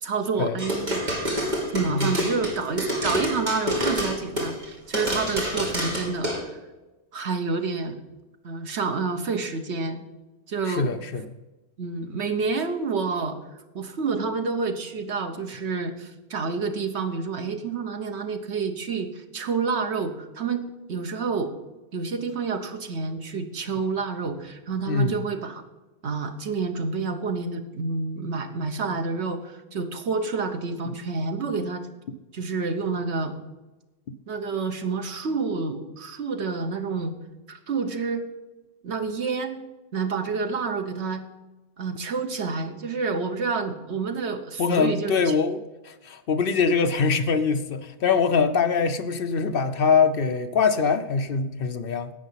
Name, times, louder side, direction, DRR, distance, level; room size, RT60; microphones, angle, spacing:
voice 1, 0.0-1.1 1.7-6.6 7.1-8.0 8.4-10.0 10.5-10.9 11.8-13.4 13.7-21.5 21.9-25.6 26.0-31.9 32.3-33.4 34.3-37.1 37.5-38.2 38.8-39.6 39.9-41.2 41.8-45.3, right 4 dB, 70° right, 7 dB, 1.4 m, -29 dB
sound 1, 0.6-4.6 4.9-6.4, equal, 40° right, 2.7 m, -27 dB
voice 2, 10.7-11.3 24.9-25.2 30.9-31.0 44.6-52.1, left 5 dB, 60° left, 10 dB, 0.8 m, -23 dB
11.0 x 8.1 x 5.6 m, 1.1 s
omnidirectional pair, 1.2 m